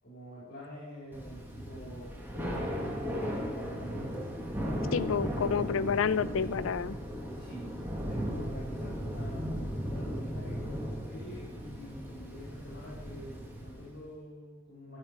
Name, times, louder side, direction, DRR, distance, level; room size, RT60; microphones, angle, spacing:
voice 1, 0.0-4.5 7.4-15.0, equal, 55° left, -7 dB, 4.0 m, -47 dB
Thunder / Rain, 1.1-14.0, equal, 10° right, 1.5 m, -36 dB
voice 2, 4.9-7.0, left 6 dB, 85° left, 17 dB, 0.5 m, -29 dB
13.0 x 7.7 x 4.8 m, 1.2 s
head